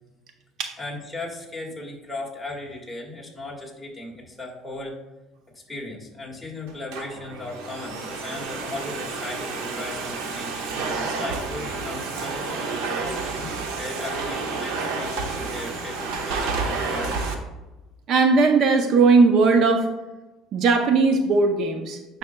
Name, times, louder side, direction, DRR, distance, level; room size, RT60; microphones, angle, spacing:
voice 1, 0.8-5.0 5.5-17.1, left 2 dB, 5° left, -3 dB, 1.7 m, -37 dB
Domestic sounds home sounds, 6.7-17.3, right 4 dB, 85° right, 1.0 m, -30 dB
voice 2, 18.1-19.9 20.5-22.2, right 4 dB, 50° right, 5 dB, 0.6 m, -18 dB
9.6 x 5.6 x 2.2 m, 1.1 s
cardioid pair, 130°, 0 cm